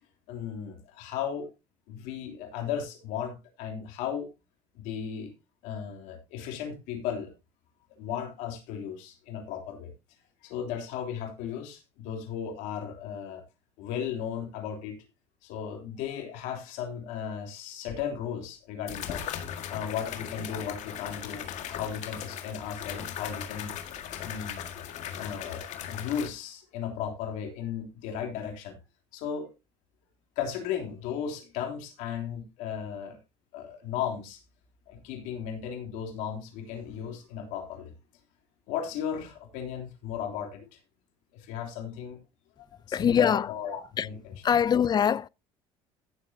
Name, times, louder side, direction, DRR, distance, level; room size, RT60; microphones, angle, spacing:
voice 1, 0.3-1.5 1.9-4.3 4.7-5.3 5.6-7.3 8.0-9.9 10.4-13.4 13.8-15.0 15.4-19.2 19.7-23.8 24.2-24.7 25.2-28.8 29.1-29.5 30.3-33.2 33.5-34.4 34.9-37.9 38.7-40.8 41.3-42.2 42.6-44.3, left 8 dB, 80° left, 3.3 m, -35 dB
sound 1, 17.9-18.0 18.9-26.3, left 9 dB, 65° left, 1.9 m, -38 dB
voice 2, 42.9-43.5 44.0-44.1 44.4-45.3, left 8 dB, 35° left, 0.5 m, -23 dB
16.0 x 7.5 x 2.8 m
supercardioid pair, 90°, 13 cm